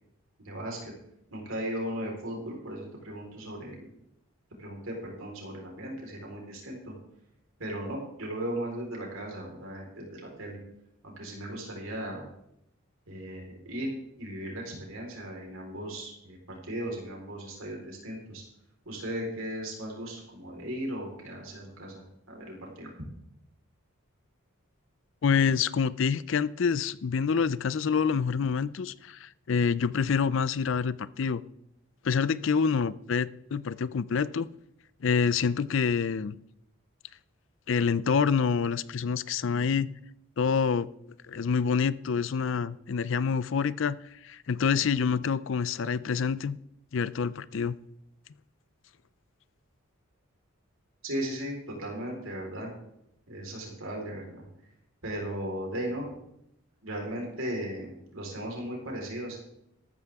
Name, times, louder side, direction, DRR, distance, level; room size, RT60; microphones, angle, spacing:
voice 1, 0.4-0.9 1.3-3.9 4.6-6.9 7.6-10.6 11.0-12.3 13.1-13.9 14.2-18.4 18.9-22.0 22.3-22.9 51.0-52.7 53.3-54.4 55.0-56.1 56.8-59.4, right 1 dB, 75° right, 0 dB, 4.2 m, -37 dB
voice 2, 25.2-31.4 32.0-34.5 35.0-36.3 37.7-39.9 40.4-40.9 41.3-44.0 44.2-46.6 46.9-47.8, left 6 dB, 60° left, 18 dB, 0.4 m, -27 dB
14.0 x 13.0 x 3.6 m, 0.79 s
head